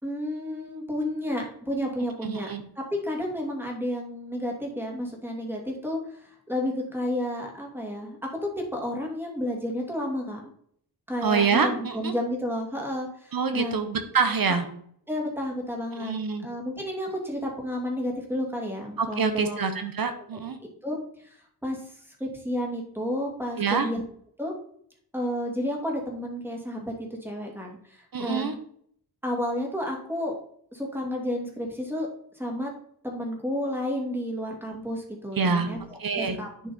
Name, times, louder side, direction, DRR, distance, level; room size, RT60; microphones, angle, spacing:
voice 1, 0.0-10.5 11.1-13.8 15.1-16.1 16.4-19.6 20.6-21.3 21.6-21.8 22.2-24.0 24.4-24.5 25.1-28.5 29.2-30.4 30.7-32.1 32.4-32.7 33.0-36.5, left 1 dB, 5° right, 0 dB, 2.5 m, -31 dB
voice 2, 2.2-2.6 11.2-12.1 13.3-14.6 15.9-16.5 19.0-20.6 23.6-23.9 28.1-28.5 35.4-35.7 36.0-36.4, right 5 dB, 60° right, 8 dB, 1.2 m, -26 dB
10.5 x 5.6 x 4.4 m, 0.64 s
wide cardioid pair, 135°, 40 cm